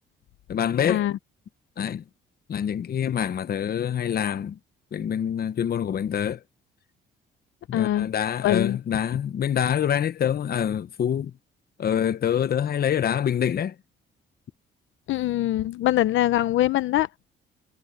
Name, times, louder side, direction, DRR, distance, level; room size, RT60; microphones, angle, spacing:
voice 1, 0.5-1.1 1.8-2.0 2.5-4.6 4.9-6.4 7.7-11.3 11.8-13.7, left 9 dB, 50° left, 0.9 m, -25 dB
voice 2, 7.7-8.1 8.4-8.8 15.1-17.1, left 13 dB, 75° left, 0.8 m, -23 dB
cardioid pair, 90°, 20 cm